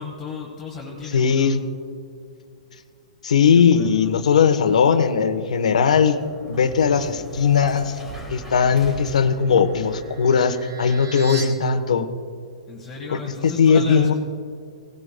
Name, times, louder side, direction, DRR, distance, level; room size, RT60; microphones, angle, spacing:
voice 1, 0.0-1.5 3.5-4.1 12.7-14.1, left 5 dB, 10° left, -3 dB, 1.5 m, -35 dB
voice 2, 1.1-1.6 3.2-6.2 6.5-8.0 8.3-12.1 13.1-14.1, left 6 dB, 85° left, 9 dB, 1.1 m, -18 dB
sound 1, 5.2-10.8, right 1 dB, 5° right, 2.1 m, -41 dB
sound 2, 9.2-11.5, right 4 dB, 40° right, 2.9 m, -39 dB
18.0 x 17.0 x 2.2 m, 2.4 s
hypercardioid pair, 155°, 4 cm